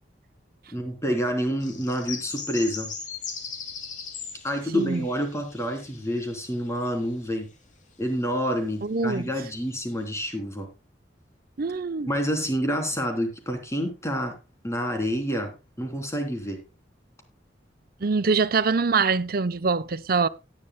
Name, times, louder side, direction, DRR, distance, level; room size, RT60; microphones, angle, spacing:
voice 1, 0.7-2.9 4.4-7.5 8.0-10.7 12.1-14.4 14.6-16.6, equal, 15° left, 3.2 m, -28 dB
sound 1, 1.6-7.4 8.0-8.1 9.0-9.1 9.5-10.1, left 6 dB, 45° left, 2.3 m, -39 dB
voice 2, 4.7-5.1 8.8-9.2 11.6-12.1 18.0-20.3, right 4 dB, 55° right, 0.6 m, -24 dB
17.5 x 10.5 x 2.2 m
head